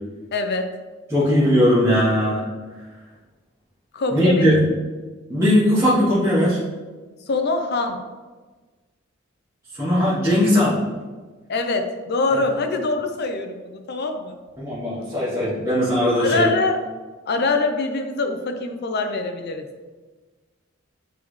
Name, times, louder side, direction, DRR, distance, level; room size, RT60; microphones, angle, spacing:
voice 1, 0.3-0.7 3.9-4.6 7.3-8.0 11.5-14.3 16.2-16.8 17.3-19.7, left 3 dB, 55° left, 5 dB, 0.6 m, -24 dB
voice 2, 1.1-2.5 4.1-4.7 5.3-6.6 9.7-10.8 12.3-12.4 14.6-16.5, equal, 15° right, -11 dB, 1.4 m, -19 dB
8.2 x 3.5 x 3.2 m, 1.3 s
head